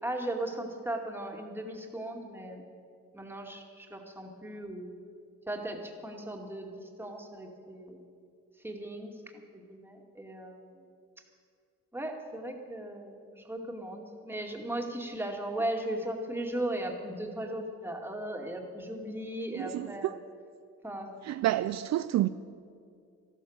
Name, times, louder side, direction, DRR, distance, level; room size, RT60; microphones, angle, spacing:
voice 1, 0.0-2.6 3.1-4.9 5.5-8.0 8.6-10.9 11.9-20.1 20.8-21.1, right 1 dB, 5° right, 2.3 m, -37 dB
voice 2, 19.5-20.1 21.2-22.3, right 14 dB, 65° right, 0.5 m, -29 dB
13.5 x 12.5 x 7.3 m
cardioid pair, 90°, 30 cm